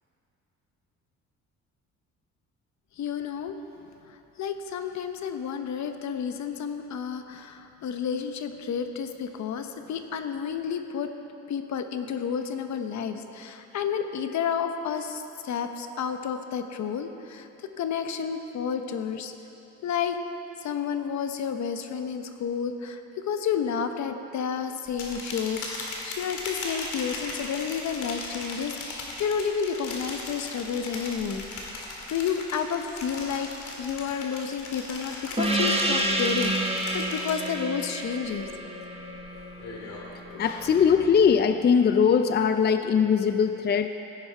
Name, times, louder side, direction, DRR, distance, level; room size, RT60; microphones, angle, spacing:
voice 1, 3.0-3.6 4.4-11.1 11.5-19.3 19.8-20.2 20.6-31.4 32.1-33.5 33.8-38.5 40.3-40.4, left 7 dB, 65° left, 7 dB, 0.9 m, -31 dB
sound 1, 24.9-37.8 38.2-38.6 39.0-40.9, left 2 dB, 85° left, 2.3 m, -38 dB
Gong, 35.4-40.4, right 1 dB, 20° right, 1.3 m, -29 dB
voice 2, 40.4-43.9, left 6 dB, 35° left, 9 dB, 0.5 m, -21 dB
15.5 x 10.0 x 4.5 m, 3.0 s
cardioid pair, 90°, 30 cm